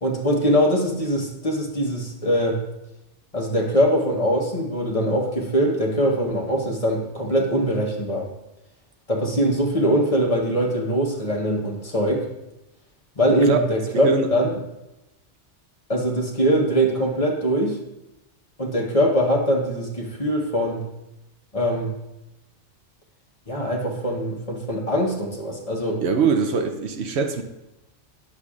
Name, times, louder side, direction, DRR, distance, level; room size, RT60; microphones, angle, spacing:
voice 1, 0.0-2.6 3.3-8.3 9.1-12.3 13.2-14.5 15.9-17.8 18.6-20.8 21.5-21.9 23.5-26.0, equal, 30° left, 0 dB, 1.0 m, -22 dB
voice 2, 13.9-14.3 26.0-27.4, right 5 dB, 70° right, 6 dB, 0.9 m, -22 dB
9.8 x 7.0 x 2.4 m, 0.93 s
omnidirectional pair, 1.2 m